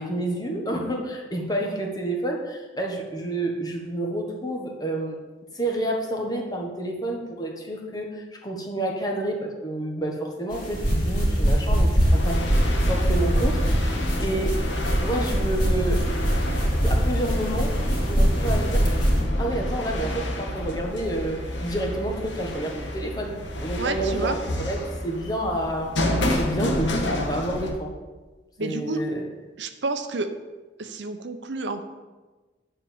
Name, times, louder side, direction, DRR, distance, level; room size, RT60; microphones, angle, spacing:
voice 1, 0.0-5.2 5.5-13.9 14.2-14.5 15.0-16.0 16.8-17.7 18.0-18.8 19.4-23.3 23.6-24.8 25.0-27.9 28.6-29.2, right 1 dB, 20° left, 0 dB, 1.4 m, -29 dB
sound 1, 10.5-19.2, equal, 45° left, 3.0 m, -23 dB
sound 2, 12.1-27.7, equal, 85° left, 1.3 m, -28 dB
voice 2, 23.8-24.4 28.6-29.0 29.6-30.3 30.8-31.8, right 3 dB, 75° right, 8 dB, 0.7 m, -29 dB
9.8 x 4.6 x 7.1 m, 1.3 s
head